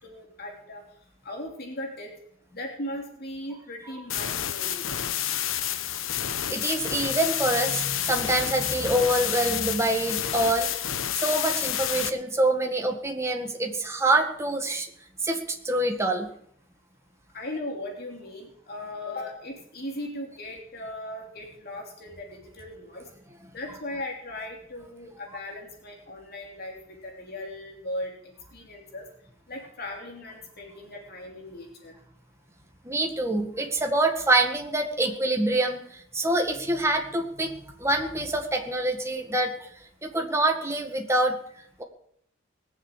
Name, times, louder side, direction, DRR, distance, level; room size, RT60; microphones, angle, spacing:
voice 1, 0.0-0.8 1.2-2.1 2.5-5.0 10.3-10.4 17.3-23.1 23.5-28.1 28.5-29.1 29.5-31.9, left 1 dB, 50° left, 0 dB, 3.1 m, -38 dB
sound 1, 4.1-12.1, left 10 dB, 85° left, 0.9 m, -29 dB
voice 2, 6.5-10.7 11.1-14.9 15.2-16.3 32.9-35.8 36.1-39.5 40.0-41.4, right 1 dB, 15° right, 3 dB, 1.7 m, -25 dB
19.5 x 7.4 x 8.4 m, 0.69 s
head